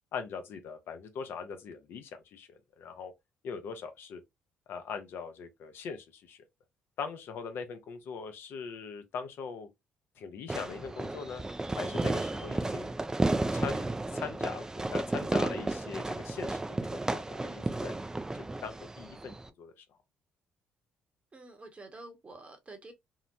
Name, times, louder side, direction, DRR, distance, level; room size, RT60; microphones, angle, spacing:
voice 1, 0.1-3.1 3.4-4.2 4.7-6.4 7.0-9.7 10.2-11.4 11.7-12.9 13.5-18.0 18.3-19.8, left 6 dB, 65° left, 0.5 m, -41 dB
Fireworks, 10.5-19.5, right 2 dB, 15° right, 0.3 m, -33 dB
voice 2, 21.3-22.9, right 2 dB, 30° right, 0.9 m, -48 dB
2.8 x 2.1 x 2.5 m
supercardioid pair, 65°, 4 cm